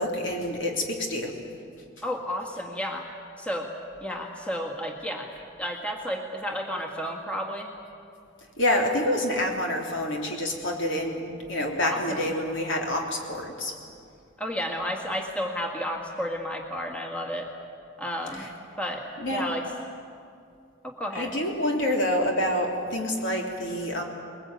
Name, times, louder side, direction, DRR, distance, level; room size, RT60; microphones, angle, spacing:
voice 1, 0.0-1.4 8.6-13.7 18.4-18.5 19.2-19.4 21.1-24.0, left 1 dB, 65° left, 1 dB, 3.3 m, -27 dB
voice 2, 2.0-3.1 3.4-3.7 4.0-7.7 11.8-12.3 14.4-17.5 18.0-18.5 18.8-19.7 20.8-21.3, equal, 5° left, 0 dB, 1.8 m, -32 dB
21.5 x 21.5 x 9.2 m, 2.4 s
head